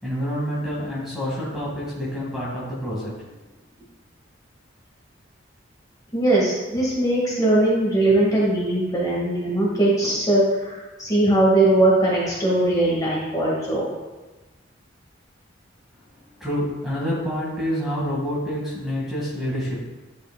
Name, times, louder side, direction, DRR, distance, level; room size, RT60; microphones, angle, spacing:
voice 1, 0.0-3.1 16.4-19.9, equal, ahead, -7 dB, 1.7 m, -27 dB
voice 2, 6.1-13.9, right 1 dB, 20° left, -6 dB, 1.8 m, -20 dB
11.0 x 5.0 x 2.2 m, 1.1 s
head